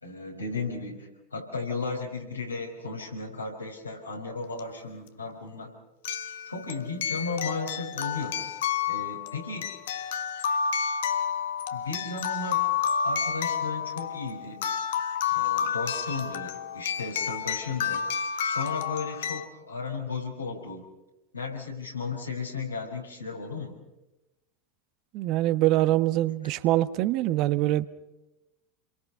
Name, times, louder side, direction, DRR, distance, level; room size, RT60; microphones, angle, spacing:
voice 1, 0.0-5.7 6.5-8.4 8.9-9.7 11.7-12.6 13.0-14.7 15.3-18.1 18.4-20.8 21.3-23.8, left 4 dB, 90° left, 0 dB, 5.5 m, -35 dB
sound 1, 4.6-4.7 6.0-19.5, left 7 dB, 65° left, 1.4 m, -30 dB
voice 2, 25.1-27.9, right 15 dB, 50° right, 13 dB, 1.2 m, -24 dB
29.0 x 23.0 x 5.7 m, 0.99 s
figure-of-eight pair, 85°, 0 cm